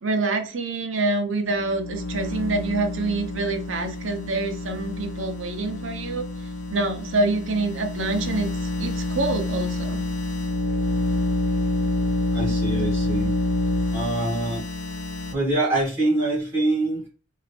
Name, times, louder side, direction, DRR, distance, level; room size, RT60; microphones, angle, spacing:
voice 1, 0.0-6.2 6.7-10.0, right 3 dB, 80° right, 4 dB, 0.8 m, -26 dB
sound 1, 1.5-15.3, left 2 dB, 70° left, 0.7 m, -28 dB
voice 2, 12.3-13.3 13.9-14.6 15.3-17.1, right 2 dB, 10° right, -6 dB, 1.9 m, -24 dB
3.7 x 2.8 x 3.3 m, 0.38 s
head